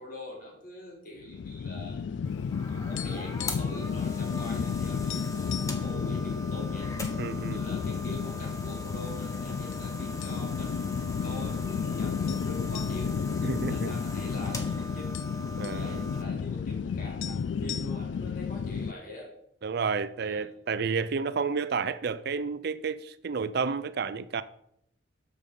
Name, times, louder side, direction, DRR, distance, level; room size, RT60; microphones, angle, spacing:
voice 1, 0.0-2.0 2.6-6.9 7.4-13.2 13.7-15.2 15.6-19.3 20.2-20.4, left 1 dB, 45° left, 3.8 m, -44 dB
sound 1, 1.3-18.9, left 6 dB, 65° left, 0.3 m, -32 dB
sound 2, 2.2-16.2, left 1 dB, 15° left, 1.3 m, -42 dB
sound 3, 3.0-4.3 4.7-4.8 5.1-5.8 6.5-7.2 7.6-7.7 8.4-9.0 9.7-9.9 10.2-10.7 11.1-11.2 12.3-14.3 14.6-14.7 14.9-15.9 16.9-17.0 17.2-18.3, left 9 dB, 90° left, 0.7 m, -42 dB
voice 2, 7.2-7.6 13.4-13.9 15.6-16.1 19.6-24.4, right 5 dB, 55° right, 0.5 m, -31 dB
13.0 x 5.3 x 5.3 m
head